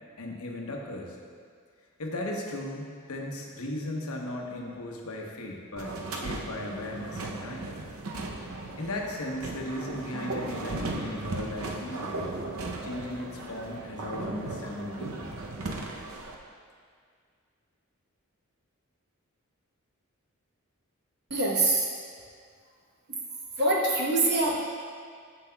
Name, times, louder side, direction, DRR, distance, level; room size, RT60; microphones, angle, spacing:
voice 1, 0.2-1.2 2.0-7.7 8.8-12.4 12.8-15.5, left 1 dB, 85° left, 0 dB, 0.9 m, -37 dB
sound 1, 5.8-16.3, right 2 dB, 75° right, 0.6 m, -36 dB
voice 2, 21.3-21.9 23.6-24.6, right 2 dB, 50° right, -3 dB, 1.0 m, -24 dB
9.3 x 6.4 x 2.3 m, 2.1 s
head